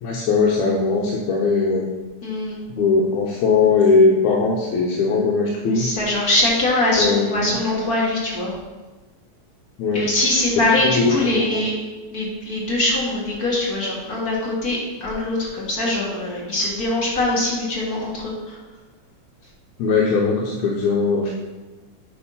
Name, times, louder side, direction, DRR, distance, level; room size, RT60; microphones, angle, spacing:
voice 1, 0.0-1.9 2.7-5.9 7.0-7.5 9.8-10.0 10.9-11.6 19.8-21.3, left 4 dB, 80° left, -2 dB, 2.1 m, -19 dB
voice 2, 2.2-2.5 5.7-8.5 9.9-11.7 12.1-18.6, left 1 dB, 35° left, -4 dB, 1.7 m, -22 dB
8.9 x 4.4 x 5.5 m, 1.2 s
omnidirectional pair, 3.3 m